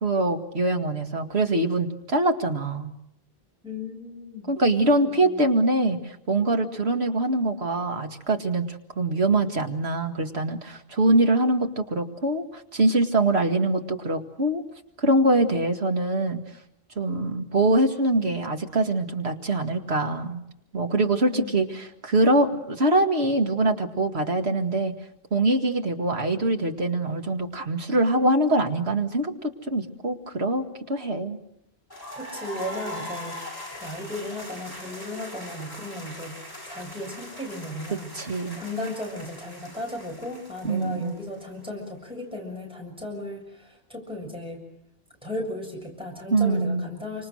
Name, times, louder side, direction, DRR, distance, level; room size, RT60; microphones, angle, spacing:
voice 1, 0.0-2.9 4.5-14.6 15.0-16.4 17.0-20.4 20.7-24.9 25.3-31.4 37.9-38.6 40.6-41.2 46.3-46.8, right 2 dB, 85° right, 5 dB, 2.3 m, -24 dB
voice 2, 3.6-4.5 4.8-5.4 21.3-21.7 32.2-33.4 33.7-38.2 38.5-44.6 45.2-47.3, left 1 dB, 5° right, 0 dB, 6.8 m, -36 dB
sound 1, 31.9-41.7, left 1 dB, 20° left, 6.9 m, -40 dB
28.5 x 25.5 x 6.4 m, 0.81 s
omnidirectional pair, 1.0 m